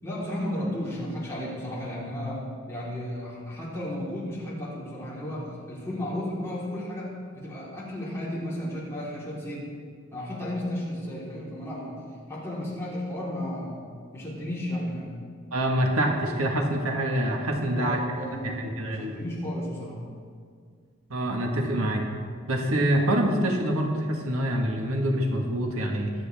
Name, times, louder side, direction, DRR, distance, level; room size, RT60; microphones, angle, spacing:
voice 1, 0.0-9.7 10.1-12.0 12.3-13.7 14.1-15.2 17.6-20.1, left 1 dB, 15° left, -8 dB, 3.9 m, -34 dB
voice 2, 15.5-18.0 18.4-19.1 21.1-22.0 22.5-26.1, right 1 dB, 85° right, 1 dB, 1.6 m, -26 dB
23.0 x 8.0 x 3.6 m, 2.1 s
head